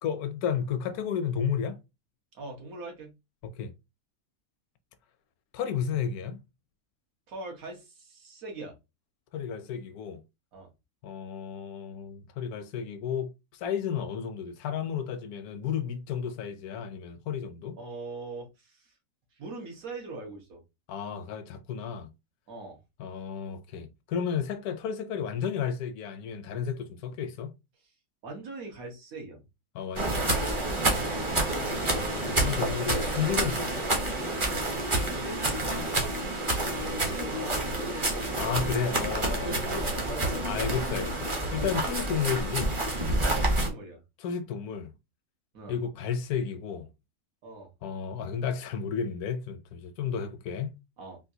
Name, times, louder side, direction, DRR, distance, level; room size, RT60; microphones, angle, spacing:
voice 1, 0.0-1.8 3.4-3.7 5.5-6.4 9.3-10.2 11.0-17.8 20.9-22.1 23.0-27.5 29.7-30.6 31.6-33.9 35.7-35.9 38.4-39.8 40.4-42.8 44.2-44.9 45.7-46.9 47.8-50.8, left 7 dB, 80° left, 1.0 m, -32 dB
voice 2, 2.3-3.1 7.3-8.8 10.5-10.7 17.8-18.9 19.3-20.6 22.5-22.8 28.2-29.4 31.0-31.2 35.0-35.4 36.6-38.6 39.2-40.4 41.5-41.7 43.2-44.0 45.5-45.8 47.4-47.7 51.0-51.2, right 2 dB, 70° right, 1.5 m, -41 dB
sound 1, 30.0-43.7, right 2 dB, 30° right, 0.6 m, -28 dB
3.6 x 2.4 x 2.7 m
omnidirectional pair, 1.6 m